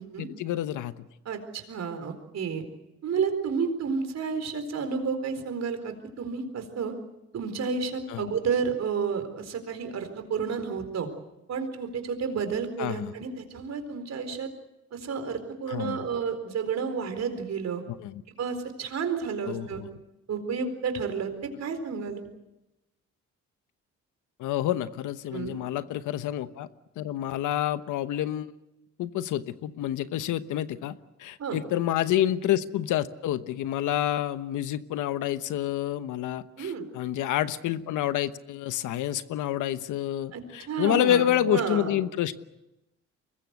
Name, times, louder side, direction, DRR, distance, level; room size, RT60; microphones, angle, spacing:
voice 1, 0.2-1.1 8.1-8.2 12.8-13.1 15.7-16.0 18.0-18.2 19.5-19.9 24.4-26.7 27.0-28.5 29.0-30.9 31.2-42.3, left 12 dB, 85° left, 12 dB, 1.1 m, -28 dB
voice 2, 1.2-2.6 3.0-6.9 7.3-11.1 11.5-14.5 14.9-17.8 18.3-19.8 20.3-22.2 25.3-25.6 31.4-31.6 36.6-36.9 40.3-42.0, right 6 dB, 60° right, 8 dB, 4.3 m, -31 dB
24.0 x 21.0 x 8.2 m, 0.94 s
cardioid pair, 90°, 30 cm